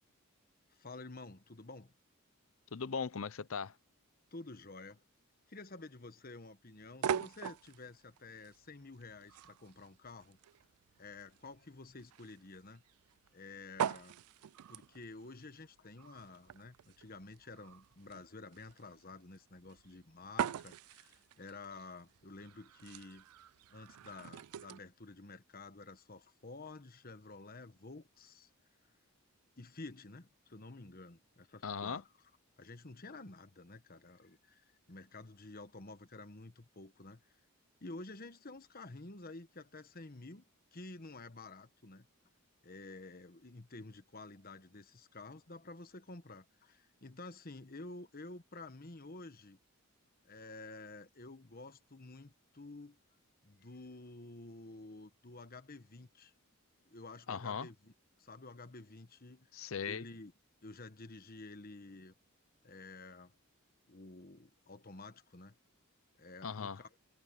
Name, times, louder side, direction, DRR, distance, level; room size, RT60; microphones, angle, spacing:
voice 1, 0.7-1.9 4.3-5.0 5.5-10.4 11.0-12.8 13.3-14.2 14.7-23.2 23.7-28.5 29.6-32.1 32.6-37.2 37.8-40.4 40.7-42.1 42.6-49.6 50.2-53.0 53.4-56.3 56.8-59.5 59.8-60.3 60.6-62.1 62.6-63.3 63.9-65.5 66.2-66.9, left 3 dB, 40° left, 1.3 m, -51 dB
voice 2, 2.7-3.7 31.6-32.0 57.3-57.7 59.5-60.0 66.4-66.8, left 6 dB, 65° left, 0.6 m, -38 dB
sound 1, 6.8-24.8, right 8 dB, 90° right, 0.4 m, -43 dB
head